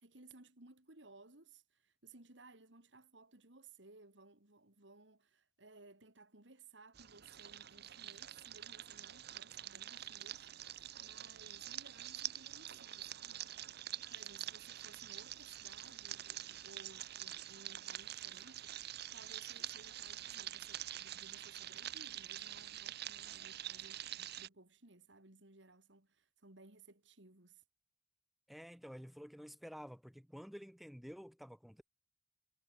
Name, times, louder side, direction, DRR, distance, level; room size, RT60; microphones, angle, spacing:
voice 1, 0.0-13.8 14.1-27.6, right 3 dB, 75° right, 3.2 m, -60 dB
sound 1, 6.9-24.5, right 12 dB, 60° right, 0.9 m, -46 dB
voice 2, 28.5-31.9, equal, ahead, 1.2 m, -51 dB
head